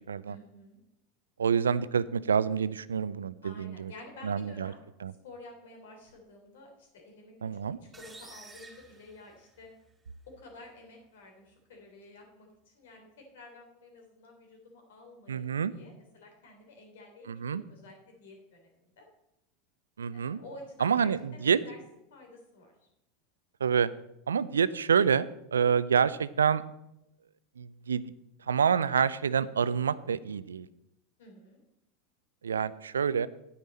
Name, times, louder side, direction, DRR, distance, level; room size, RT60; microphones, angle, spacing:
voice 1, 0.2-0.8 3.4-4.8 5.2-7.3 7.8-9.7 10.3-19.0 20.1-21.8 22.1-22.7 31.2-31.6, left 2 dB, 70° left, 2 dB, 3.5 m, -51 dB
voice 2, 1.4-3.9 4.2-4.7 5.0-5.1 7.4-7.8 15.3-15.7 17.3-17.6 20.0-20.4 20.8-21.6 23.6-23.9 24.3-26.6 27.6-28.0 28.5-30.7 32.4-33.3, right 7 dB, 80° right, 17 dB, 0.4 m, -27 dB
sound 1, 7.9-9.9, right 3 dB, 15° right, 3.5 m, -51 dB
10.0 x 9.6 x 4.2 m, 0.84 s
hypercardioid pair, 85°, 0 cm